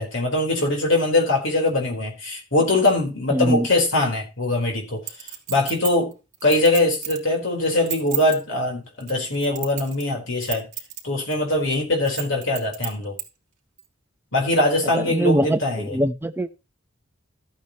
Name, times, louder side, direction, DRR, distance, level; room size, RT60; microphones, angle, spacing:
voice 1, 0.0-5.0 5.5-6.1 6.4-10.7 11.0-13.2 14.3-16.0, left 2 dB, 65° left, 4.1 m, -22 dB
voice 2, 3.3-3.7 14.9-16.5, right 1 dB, 10° right, 0.8 m, -22 dB
Chink clink, 5.1-7.3 7.7-8.4 9.0-10.1 10.4-11.0 11.3-11.4 12.1-13.3 13.8-13.9, right 13 dB, 40° right, 3.2 m, -31 dB
14.0 x 8.9 x 3.0 m
head